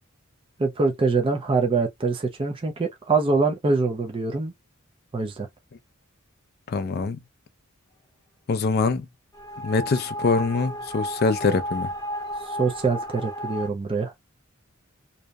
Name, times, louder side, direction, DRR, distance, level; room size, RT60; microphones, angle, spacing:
voice 1, 0.6-4.5 5.1-5.5 12.4-14.1, right 4 dB, 25° right, 0.3 m, -24 dB
voice 2, 6.7-7.2 8.5-9.1 9.6-11.9, left 4 dB, 50° left, 0.4 m, -24 dB
sound 1, 9.3-13.7, equal, 15° left, 0.7 m, -33 dB
2.6 x 2.1 x 2.2 m
head